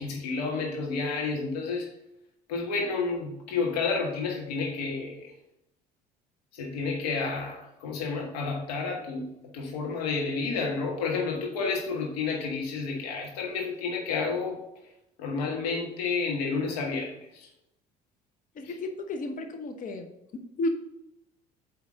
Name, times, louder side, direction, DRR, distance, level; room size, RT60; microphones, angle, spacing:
voice 1, 0.0-1.9 2.5-5.3 6.5-9.3 9.5-14.6 15.2-17.5, left 4 dB, 70° left, 1 dB, 1.6 m, -30 dB
voice 2, 18.5-20.1 20.6-20.7, left 2 dB, 40° left, 6 dB, 1.0 m, -32 dB
8.3 x 3.4 x 6.4 m, 0.84 s
figure-of-eight pair, 55°, 21 cm